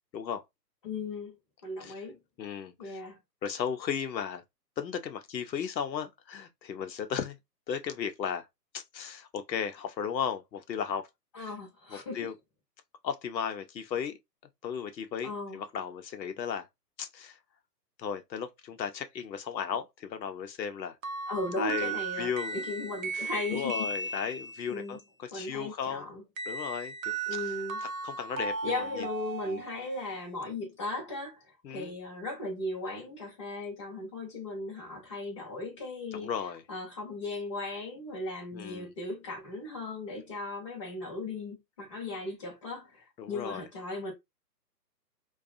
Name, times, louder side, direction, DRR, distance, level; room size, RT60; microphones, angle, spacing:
voice 1, 0.8-1.3 1.6-2.2 2.8-3.2 11.3-12.3 15.2-15.6 21.3-24.2 24.7-25.0 25.3-26.2 27.3-27.8 28.6-36.3 36.7-44.1, left 2 dB, 20° left, 0.6 m, -37 dB
voice 2, 2.4-3.0 3.4-4.4 4.8-7.4 7.7-8.5 8.7-11.1 11.4-11.5 11.9-12.3 13.0-14.2 14.6-16.7 17.0-17.4 18.0-21.0 21.6-22.6 23.1-26.1 26.5-27.1 27.8-29.1 29.5-29.6 31.6-31.9 36.1-36.6 38.5-38.9 43.2-43.7, left 7 dB, 90° left, 0.7 m, -35 dB
sound 1, 21.0-24.8 26.4-30.1, right 4 dB, 55° right, 0.6 m, -36 dB
2.5 x 2.3 x 2.4 m
hypercardioid pair, 150°, 50 cm